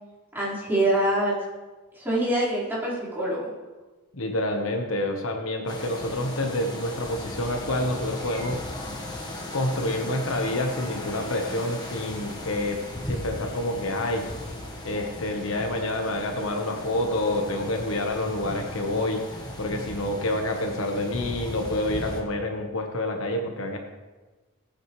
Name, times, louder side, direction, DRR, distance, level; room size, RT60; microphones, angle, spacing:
voice 1, 0.3-1.3 1.9-3.5, right 1 dB, 10° right, -10 dB, 4.8 m, -25 dB
voice 2, 4.1-8.6 9.5-12.8 13.1-14.3 14.8-23.8, left 1 dB, 70° left, 3 dB, 1.3 m, -28 dB
sound 1, 5.7-22.2, left 1 dB, 20° left, 1.5 m, -37 dB
19.5 x 8.8 x 3.3 m, 1.2 s
head